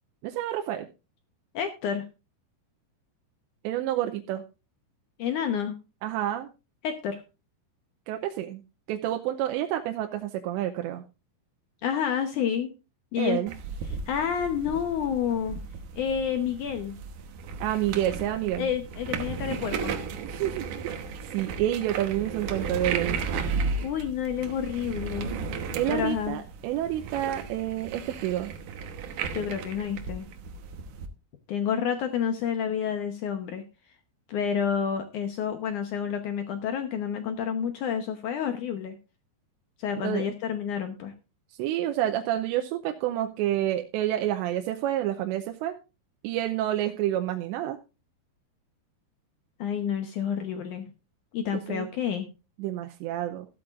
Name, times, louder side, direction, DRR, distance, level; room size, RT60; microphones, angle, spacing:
voice 1, 0.2-0.9 3.6-4.4 6.0-6.5 8.1-8.6 8.9-11.0 13.2-13.5 17.6-18.7 20.2-23.4 25.7-28.5 40.0-40.3 41.6-45.8 46.2-47.8 51.5-51.9 52.6-53.5, right 12 dB, 90° right, 5 dB, 3.0 m, -29 dB
voice 2, 1.5-2.1 5.2-5.8 6.8-7.2 11.8-12.7 13.1-13.4 14.1-15.6 16.0-17.0 18.6-19.9 23.8-25.3 25.9-26.4 29.3-30.3 31.5-33.6 34.3-39.0 39.8-41.1 49.6-50.9 51.3-52.3, left 8 dB, 80° left, 7 dB, 1.7 m, -29 dB
sound 1, 13.5-31.1, right 5 dB, 70° right, 2.0 m, -35 dB
14.5 x 12.5 x 2.5 m, 0.30 s
omnidirectional pair, 5.0 m